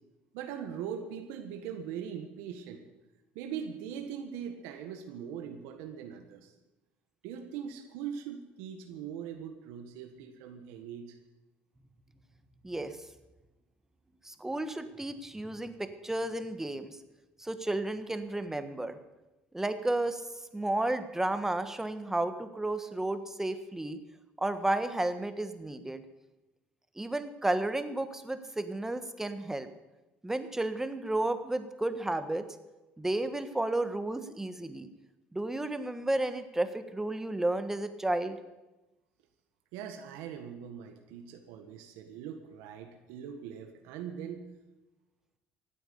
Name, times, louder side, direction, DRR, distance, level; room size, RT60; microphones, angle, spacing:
voice 1, 0.3-2.8 3.3-6.5 7.2-11.2 39.7-44.5, right 8 dB, 85° right, 6 dB, 1.5 m, -41 dB
voice 2, 12.6-13.0 14.2-17.0 17.4-19.0 19.5-20.2 20.5-24.0 24.4-26.0 27.0-29.7 30.2-32.4 33.0-34.9 35.3-38.4, right 2 dB, 10° right, 10 dB, 1.3 m, -32 dB
15.5 x 9.2 x 8.2 m, 1.1 s
supercardioid pair, 90°, 4 cm